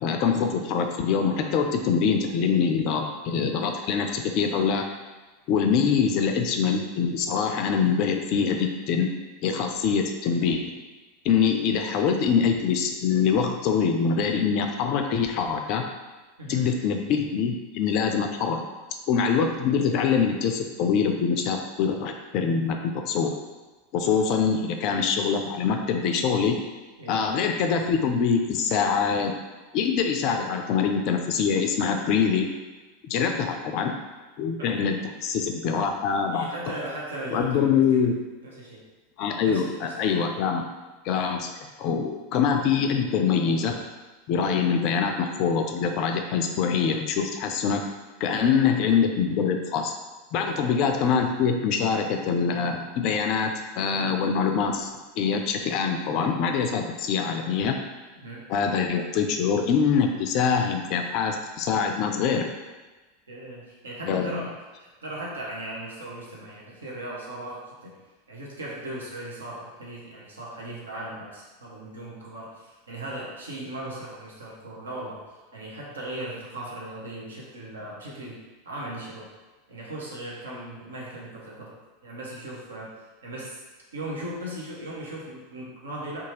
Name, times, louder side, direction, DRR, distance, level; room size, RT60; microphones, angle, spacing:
voice 1, 0.0-4.8 5.5-9.1 9.4-10.6 11.2-15.8 16.5-18.6 19.1-23.3 23.9-26.6 27.1-29.3 29.7-32.4 33.1-33.9 34.4-36.5 37.3-38.1 39.2-40.6 41.0-41.5 41.8-43.8 44.3-47.8 48.2-49.9 50.3-54.9 55.2-57.7 58.5-62.5 64.1-64.5, left 6 dB, 45° left, 4 dB, 0.3 m, -24 dB
voice 2, 16.4-16.7 24.0-24.1 27.0-27.2 33.1-33.3 34.6-34.9 36.3-38.1 38.4-38.9 39.4-40.1 44.5-44.7 48.2-48.6 50.5-50.7 58.2-58.5 63.3-68.0 68.3-78.4 78.6-79.3 79.7-83.6 83.9-86.2, right 1 dB, 75° right, -4 dB, 0.6 m, -38 dB
2.7 x 2.3 x 3.0 m, 1.2 s
figure-of-eight pair, 85°, 0 cm